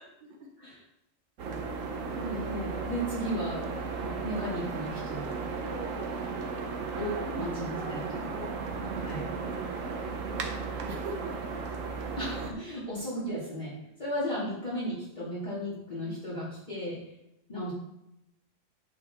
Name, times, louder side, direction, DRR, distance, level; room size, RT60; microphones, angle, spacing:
voice 1, 0.2-0.5 5.6-6.2 7.0-11.6, right 2 dB, 40° right, 0 dB, 1.3 m, -43 dB
sound 1, 1.4-12.5, right 4 dB, 80° right, 1.4 m, -35 dB
voice 2, 2.1-3.6 4.0-5.3 6.9-8.3 9.0-9.3 12.2-13.7 14.0-17.0 17.5-17.7, equal, 35° left, -10 dB, 2.5 m, -35 dB
8.6 x 6.4 x 3.6 m, 0.86 s
omnidirectional pair, 1.3 m